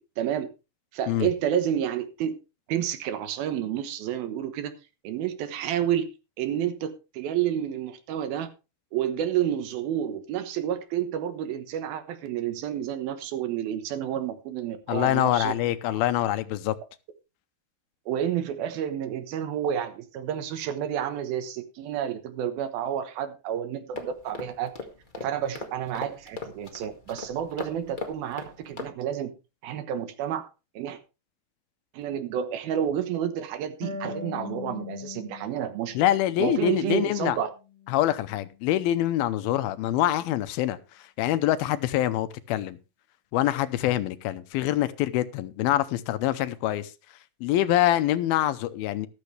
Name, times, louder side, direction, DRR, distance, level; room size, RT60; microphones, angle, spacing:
voice 1, 0.2-0.5 0.9-2.3 2.7-4.7 5.0-6.1 6.4-8.5 8.9-15.5 18.1-24.7 25.2-29.3 29.6-30.5 30.8-31.0 31.9-36.0 36.4-37.5, right 10 dB, 75° right, 10 dB, 3.0 m, -30 dB
voice 2, 14.9-16.8 35.9-37.4 37.9-42.8 43.3-46.9 47.4-49.1, left 13 dB, 80° left, 13 dB, 2.6 m, -25 dB
sound 1, 23.9-28.9, left 2 dB, 55° left, 0.5 m, -39 dB
Harp, 33.8-37.2 37.5-38.6, left 5 dB, 10° left, 4.2 m, -41 dB
13.5 x 12.5 x 3.3 m, 0.29 s
omnidirectional pair, 4.3 m